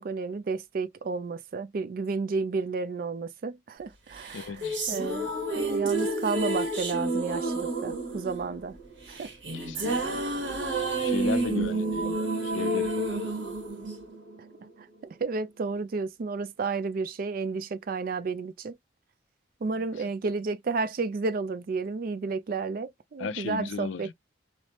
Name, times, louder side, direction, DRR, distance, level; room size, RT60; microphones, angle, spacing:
voice 1, 0.0-4.6 4.9-5.3 5.6-8.8 9.1-9.3 9.8-10.2 11.7-12.1 15.2-18.8 19.6-24.1, right 4 dB, 45° right, 0.4 m, -32 dB
sound 1, 4.2-14.6, right 2 dB, 70° right, 1.1 m, -30 dB
voice 2, 4.3-4.8 9.5-10.0 11.0-13.3 19.8-20.0 23.2-24.1, left 5 dB, 70° left, 0.4 m, -36 dB
3.1 x 2.0 x 2.7 m
head